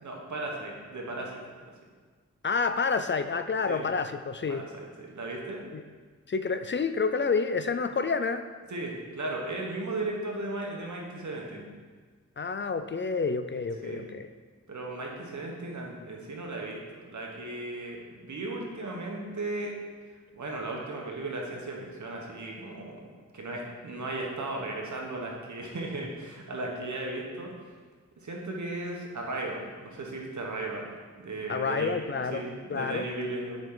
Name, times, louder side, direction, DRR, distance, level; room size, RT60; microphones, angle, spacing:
voice 1, 0.0-1.7 3.7-3.8 4.5-5.6 8.7-11.6 13.8-14.1 14.7-19.7 20.3-27.5 28.2-30.9 31.2-32.0 32.3-33.6, right 2 dB, 80° right, -1 dB, 1.3 m, -36 dB
voice 2, 2.4-4.6 5.7-5.8 6.3-8.4 12.4-14.3 31.5-32.4 32.7-33.1, left 5 dB, 40° left, 9 dB, 0.4 m, -29 dB
7.4 x 5.1 x 3.9 m, 1.5 s
wide cardioid pair, 85°, 29 cm